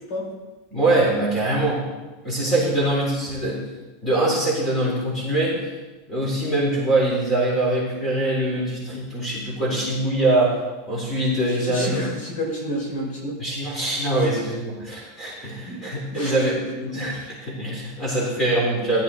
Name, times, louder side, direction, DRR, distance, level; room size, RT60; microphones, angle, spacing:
voice 1, 0.7-1.9 2.2-3.6 4.0-5.6 6.1-10.6 10.9-12.1 13.4-19.0, right 1 dB, 10° left, -4 dB, 3.5 m, -23 dB
voice 2, 11.6-13.4 15.6-15.8 16.1-16.4 16.9-17.3, equal, 60° left, -1 dB, 4.8 m, -30 dB
15.0 x 11.5 x 3.8 m, 1.2 s
supercardioid pair, 165°, 0 cm